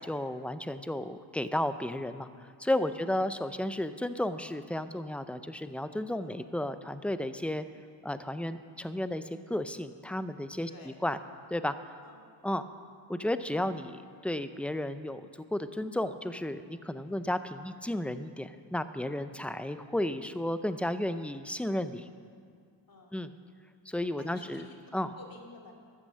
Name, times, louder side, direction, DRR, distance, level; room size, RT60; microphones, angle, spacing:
voice 1, 0.0-7.6 8.0-11.2 11.5-12.0 12.4-12.6 13.1-15.3 15.5-22.1 23.1-23.3 23.9-24.7 24.9-25.1, left 1 dB, 5° left, 11 dB, 0.6 m, -33 dB
voice 2, 10.7-11.0 12.0-12.2 17.0-17.3 19.3-19.6 22.9-23.1 24.2-25.7, left 2 dB, 45° left, 1 dB, 2.5 m, -53 dB
13.5 x 9.9 x 7.5 m, 2.1 s
cardioid pair, 75°, 49 cm